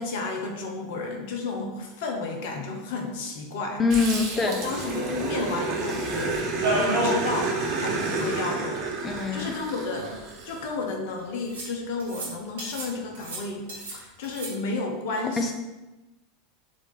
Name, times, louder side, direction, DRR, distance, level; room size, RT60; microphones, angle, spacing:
voice 1, 0.0-3.8 4.4-6.4 6.6-10.1 10.4-13.6 13.9-15.5, left 3 dB, 55° left, 2 dB, 0.8 m, -32 dB
voice 2, 3.8-4.6 9.0-9.5 15.4-15.5, left 4 dB, 20° left, 4 dB, 0.6 m, -24 dB
Growling, 3.9-10.6, right 3 dB, 45° right, 1.1 m, -30 dB
sound 1, 6.6-7.3 7.6-7.7 8.0-8.1 9.1-9.2 9.9-10.6 11.5-11.7 12.0-12.3 12.6-12.9 13.2-14.0 14.2-14.5, right 1 dB, 70° right, 1.5 m, -29 dB
4.7 x 2.7 x 3.9 m, 1.1 s
figure-of-eight pair, 80°, 0 cm